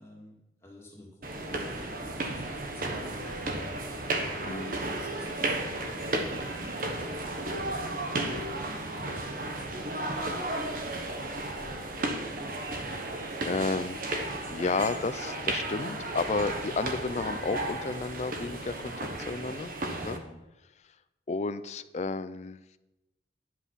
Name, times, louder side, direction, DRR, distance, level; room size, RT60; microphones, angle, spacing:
voice 1, 0.0-4.3 4.8-8.0 8.6-11.7 19.8-20.4, left 1 dB, 15° left, -3 dB, 2.3 m, -50 dB
sound 1, 1.2-20.2, right 2 dB, 50° right, 1.2 m, -34 dB
voice 2, 4.4-4.8 13.4-14.1 14.5-19.7 20.0-20.2 21.3-22.6, left 3 dB, 40° left, 13 dB, 0.4 m, -32 dB
10.5 x 8.2 x 5.6 m, 0.99 s
head